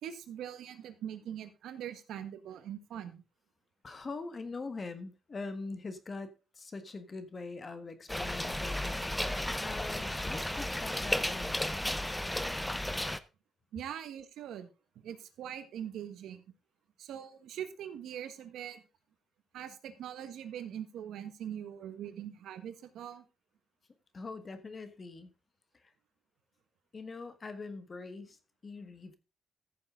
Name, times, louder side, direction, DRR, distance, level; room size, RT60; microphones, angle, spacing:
voice 1, 0.0-3.2 13.7-14.7 14.9-16.4 17.0-18.8 19.5-23.2, right 10 dB, 80° right, 10 dB, 1.5 m, -42 dB
voice 2, 3.8-8.9 9.6-11.8 24.1-25.3 25.7-25.9 26.9-28.4 28.6-29.2, left 3 dB, 30° left, 10 dB, 1.5 m, -43 dB
sound 1, 8.1-13.2, left 1 dB, 5° left, 0.7 m, -34 dB
14.5 x 6.9 x 3.8 m, 0.31 s
cardioid pair, 120°, 0 cm